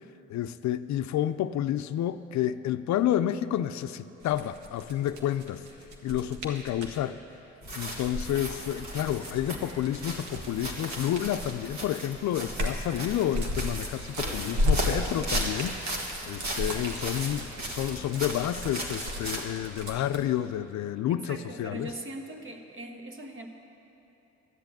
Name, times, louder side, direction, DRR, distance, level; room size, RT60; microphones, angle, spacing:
voice 1, 0.3-5.6 6.0-7.2 7.8-21.9, left 11 dB, 70° left, 12 dB, 0.5 m, -30 dB
sound 1, 4.2-7.0 7.9-11.7 12.1-20.2, left 1 dB, 80° right, 1.6 m, -34 dB
sound 2, 7.6-19.4, right 1 dB, 65° right, 2.1 m, -37 dB
voice 2, 16.7-17.1 21.1-23.5, right 1 dB, 40° right, 4 dB, 1.4 m, -41 dB
12.5 x 8.2 x 8.8 m, 2.9 s
cardioid pair, 90°, 30 cm